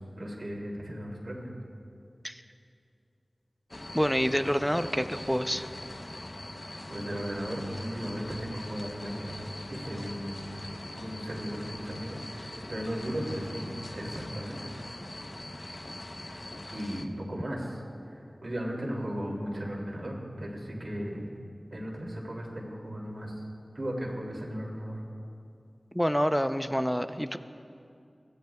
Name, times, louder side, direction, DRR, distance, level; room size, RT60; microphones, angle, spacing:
voice 1, 0.2-1.5 6.9-9.3 9.7-10.4 10.9-14.7 16.7-17.8 18.4-21.3 21.7-23.3 23.7-25.0, equal, 65° right, -2 dB, 2.7 m, -36 dB
sound 1, 3.7-17.1, left 1 dB, 45° left, 0.8 m, -42 dB
voice 2, 3.9-5.7 25.9-27.4, equal, 5° left, 9 dB, 0.6 m, -27 dB
23.0 x 15.5 x 2.3 m, 2.5 s
wide cardioid pair, 50°, 0 cm